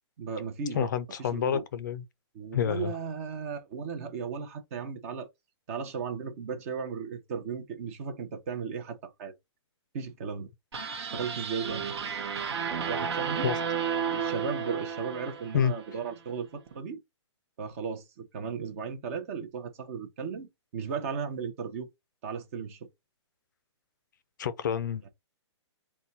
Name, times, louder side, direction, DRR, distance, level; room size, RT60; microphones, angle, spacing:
voice 1, 0.2-0.9 1.2-1.6 2.3-5.3 5.7-9.3 9.9-10.5 11.1-11.8 12.9-13.5 14.0-17.0 17.6-21.9 22.2-22.9, right 6 dB, 30° right, 0.7 m, -36 dB
voice 2, 0.7-2.0 2.5-3.0 13.4-13.5 15.5-15.7 24.4-25.1, left 8 dB, 40° left, 0.4 m, -28 dB
sound 1, 10.7-16.0, right 7 dB, 60° right, 0.9 m, -32 dB
4.2 x 2.3 x 3.9 m
hypercardioid pair, 170°, 15 cm